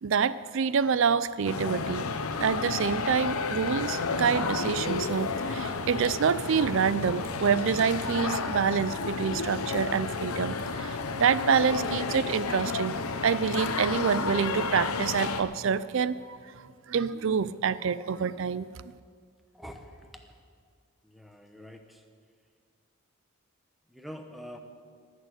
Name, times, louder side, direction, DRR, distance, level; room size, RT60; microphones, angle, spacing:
voice 1, 0.0-2.1 2.4-13.0 13.2-16.4 16.9-18.7, right 6 dB, 60° right, 16 dB, 0.4 m, -27 dB
sound 1, 1.4-15.4, left 4 dB, 85° left, 0.8 m, -31 dB
voice 2, 19.5-20.4 21.0-22.0 23.9-24.6, equal, ahead, 5 dB, 0.9 m, -45 dB
19.0 x 6.5 x 8.0 m, 2.1 s
head